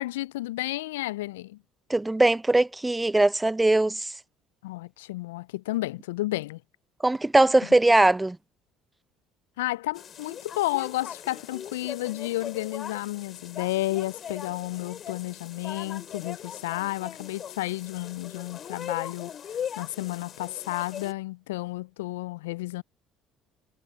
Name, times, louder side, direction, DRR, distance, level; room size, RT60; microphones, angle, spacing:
voice 1, 0.0-1.6 4.6-6.6 9.6-19.3 19.8-22.8, left 18 dB, 80° left, 0.4 m, -32 dB
voice 2, 1.9-4.1 7.0-8.4, right 2 dB, 15° right, 0.6 m, -21 dB
sound 1, 9.9-21.1, left 9 dB, 50° left, 7.4 m, -40 dB
hypercardioid pair, 60°, 0 cm